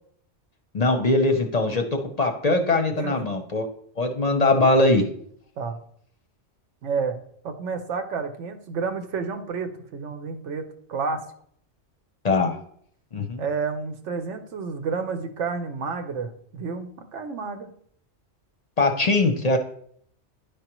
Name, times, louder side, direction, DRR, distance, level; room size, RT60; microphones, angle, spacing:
voice 1, 0.7-3.7 4.0-5.1 12.2-12.6 13.1-13.4 18.8-19.6, left 2 dB, 45° left, 5 dB, 0.6 m, -21 dB
voice 2, 3.0-3.3 5.6-5.8 6.8-7.2 7.4-11.2 13.4-17.7, right 5 dB, 90° right, 7 dB, 1.1 m, -30 dB
10.5 x 4.9 x 3.0 m, 0.64 s
omnidirectional pair, 1.2 m